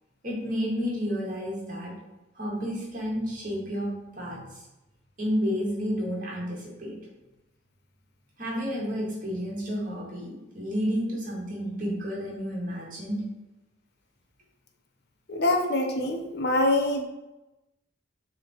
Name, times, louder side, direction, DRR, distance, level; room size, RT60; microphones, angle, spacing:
voice 1, 0.2-1.9 2.4-4.6 5.2-6.9 8.4-13.2, equal, 40° right, -3 dB, 2.1 m, -31 dB
voice 2, 15.3-17.0, left 1 dB, 50° left, 4 dB, 0.8 m, -24 dB
6.8 x 3.6 x 4.5 m, 0.99 s
head